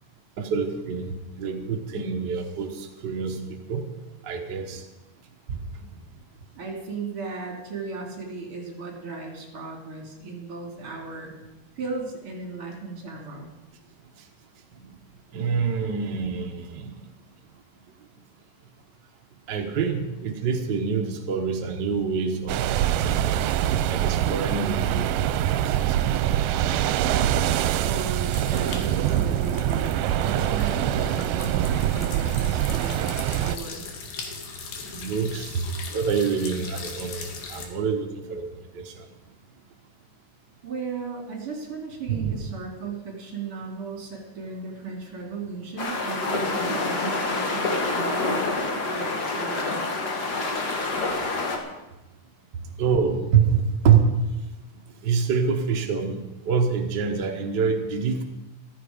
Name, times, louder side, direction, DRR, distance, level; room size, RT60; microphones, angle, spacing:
voice 1, 0.4-3.8 4.2-4.8 5.5-5.6 14.7-15.0 15.3-17.0 19.5-22.6 23.0-23.5 23.9-26.0 34.8-39.1 42.1-42.4 52.8-54.2 55.0-58.2, right 6 dB, 65° right, 3 dB, 1.1 m, -26 dB
voice 2, 6.6-11.3 11.8-13.5 27.8-30.0 30.2-33.8 40.6-50.1, right 4 dB, 45° right, 0 dB, 3.5 m, -36 dB
sound 1, 22.5-33.6, right 11 dB, 80° right, 2.2 m, -24 dB
sound 2, 28.3-37.7, left 4 dB, 90° left, 3.4 m, -40 dB
Waves on shore of lake maggiore, 45.8-51.6, left 3 dB, 40° left, 1.7 m, -27 dB
14.5 x 13.5 x 5.1 m, 1.0 s
omnidirectional pair, 3.8 m